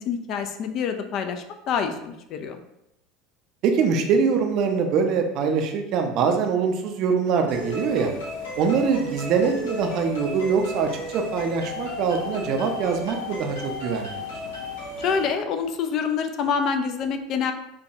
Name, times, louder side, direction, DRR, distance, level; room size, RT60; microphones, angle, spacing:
voice 1, 0.0-2.6 15.0-17.5, left 6 dB, 45° left, 7 dB, 0.3 m, -26 dB
voice 2, 3.6-8.1 8.6-14.2, right 5 dB, 50° right, 4 dB, 0.5 m, -23 dB
sound 1, 7.5-15.3, left 2 dB, 75° left, 1.1 m, -34 dB
4.5 x 2.2 x 2.6 m, 0.83 s
figure-of-eight pair, 75°, 0 cm